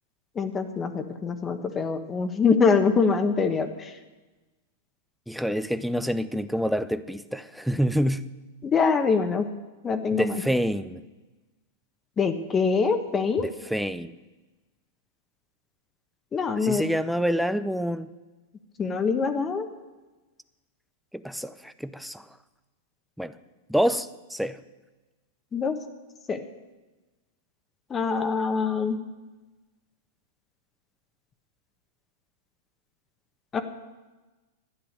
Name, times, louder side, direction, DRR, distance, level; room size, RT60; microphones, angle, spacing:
voice 1, 0.4-3.9 8.6-9.5 9.8-10.4 12.2-13.5 16.3-16.8 18.8-19.7 25.5-25.8 26.3-26.4 27.9-29.0 33.5-33.6, left 5 dB, 25° left, 1.1 m, -24 dB
voice 2, 5.3-8.3 10.1-11.0 13.4-14.1 16.6-18.1 21.1-22.2 23.2-23.3 23.7-24.6, equal, ahead, 0.6 m, -27 dB
12.5 x 10.0 x 6.7 m
hypercardioid pair, 105°, 0 cm